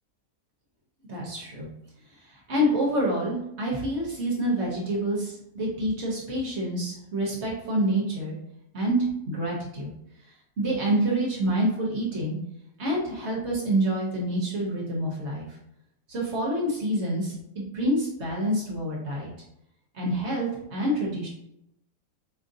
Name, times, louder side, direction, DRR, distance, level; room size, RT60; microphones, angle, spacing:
voice 1, 1.1-1.7 2.3-8.4 8.7-9.9 10.6-12.4 12.8-15.5 16.1-19.3 19.9-21.3, right 1 dB, 55° right, -4 dB, 0.9 m, -27 dB
4.4 x 2.5 x 2.6 m, 0.81 s
omnidirectional pair, 1.6 m